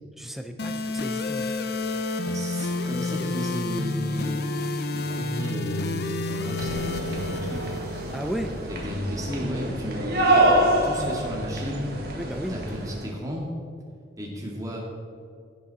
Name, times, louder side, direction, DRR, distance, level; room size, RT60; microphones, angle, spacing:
voice 1, 0.2-1.5 8.1-8.5 12.2-12.6, equal, ahead, 6 dB, 0.5 m, -33 dB
sound 1, 0.6-8.6, left 2 dB, 55° left, 0.7 m, -30 dB
voice 2, 2.2-4.4 4.9-7.7 8.7-10.5 10.8-11.9 12.5-13.5 14.2-14.8, equal, 20° right, -2 dB, 2.0 m, -33 dB
sound 2, 6.6-13.1, right 1 dB, 55° right, 1.6 m, -26 dB
15.5 x 6.3 x 4.2 m, 2.3 s
head